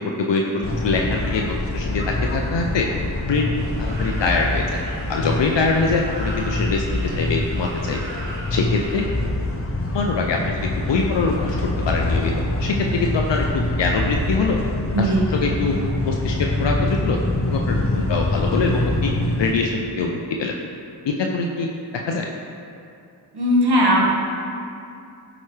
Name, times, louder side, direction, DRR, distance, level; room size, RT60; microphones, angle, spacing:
voice 1, 0.0-2.9 3.2-3.5 3.8-4.6 5.1-6.8 7.2-8.0 8.5-9.0 9.9-11.6 11.8-12.3 12.6-14.6 15.0-15.8 16.1-17.2 17.4-19.1 19.4-20.5 21.0-22.3, left 4 dB, 75° left, 1 dB, 0.6 m, -23 dB
sound 1, 0.6-19.5, left 2 dB, 30° left, 0.8 m, -25 dB
sound 2, 3.5-9.1, right 1 dB, 85° right, 1.4 m, -38 dB
voice 2, 23.3-24.3, equal, 60° right, -4 dB, 1.7 m, -18 dB
11.5 x 4.9 x 3.3 m, 2.5 s
cardioid pair, 40°, 43 cm